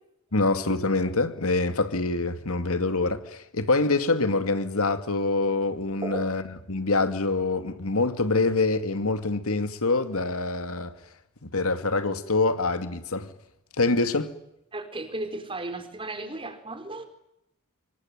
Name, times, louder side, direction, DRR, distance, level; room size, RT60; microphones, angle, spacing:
voice 1, 0.3-11.0 11.4-13.3 13.8-14.3, left 3 dB, 80° left, 2.4 m, -25 dB
voice 2, 14.7-17.1, right 2 dB, 25° right, 4.4 m, -35 dB
26.5 x 24.5 x 9.1 m
head